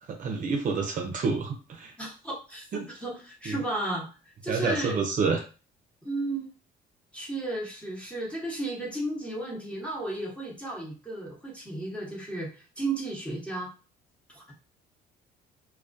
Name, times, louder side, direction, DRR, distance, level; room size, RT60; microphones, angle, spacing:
voice 1, 0.1-1.9 2.7-2.8 3.5-3.6 4.5-5.4, right 4 dB, 45° right, 3 dB, 0.6 m, -28 dB
voice 2, 2.0-4.1 4.4-5.0 6.0-6.5 7.1-13.7 14.3-14.6, right 2 dB, 5° left, -5 dB, 0.9 m, -34 dB
2.2 x 2.2 x 2.5 m, 0.34 s
cardioid pair, 90°, 18 cm